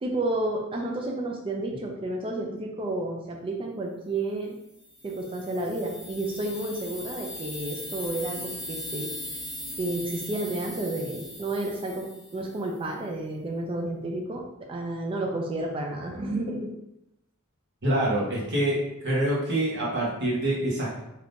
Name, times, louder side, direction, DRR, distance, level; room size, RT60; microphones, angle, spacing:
voice 1, 0.0-4.5 5.0-9.1 9.8-12.1 12.3-14.4 14.7-16.7, right 2 dB, 25° right, 0 dB, 0.3 m, -31 dB
sound 1, 4.8-12.7, left 1 dB, 10° right, 1.4 m, -39 dB
voice 2, 17.8-18.8 19.0-21.0, right 1 dB, 50° right, -5 dB, 1.1 m, -26 dB
3.5 x 2.8 x 2.5 m, 0.86 s
head